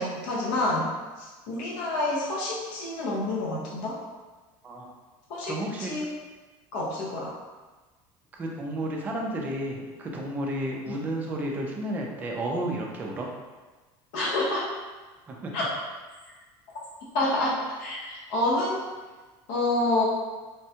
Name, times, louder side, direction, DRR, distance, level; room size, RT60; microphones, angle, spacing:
voice 1, 0.0-4.0 5.3-6.0 6.7-7.4 10.9-11.0 14.1-14.7 15.5-15.7 17.1-18.8 19.5-20.1, left 2 dB, 65° left, -5 dB, 0.6 m, -28 dB
voice 2, 5.4-5.9 8.3-13.3 15.3-15.5, right 1 dB, 15° right, -1 dB, 0.3 m, -32 dB
3.5 x 2.1 x 2.7 m, 1.3 s
cardioid pair, 180°, 11 cm